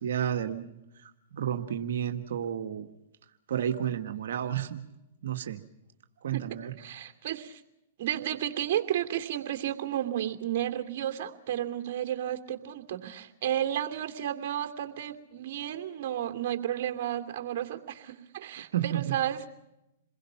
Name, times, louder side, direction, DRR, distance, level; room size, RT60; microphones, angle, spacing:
voice 1, 0.0-2.9 3.5-4.8 5.2-5.6 6.2-6.8 18.6-19.1, right 9 dB, 70° right, 6 dB, 1.8 m, -32 dB
voice 2, 6.8-7.6 8.0-19.5, right 11 dB, 55° right, 6 dB, 2.6 m, -32 dB
28.5 x 21.5 x 5.8 m, 0.90 s
hypercardioid pair, 125°, 0 cm